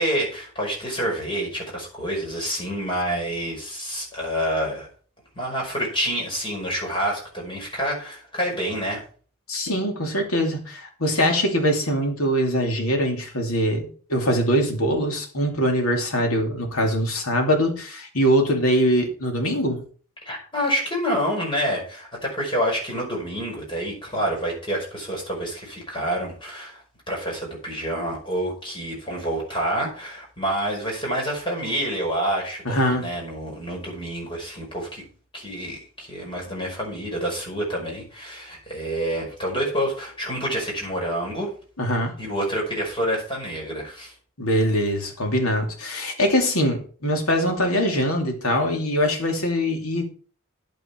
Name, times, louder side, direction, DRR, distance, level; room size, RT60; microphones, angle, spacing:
voice 1, 0.0-4.9 5.4-9.0 20.2-35.0 35.3-41.5 42.2-44.1, equal, 25° left, -1 dB, 5.4 m, -28 dB
voice 2, 9.5-19.8 32.6-33.1 41.8-42.1 44.4-50.0, equal, 75° left, 3 dB, 2.8 m, -22 dB
10.5 x 9.1 x 4.6 m, 0.42 s
head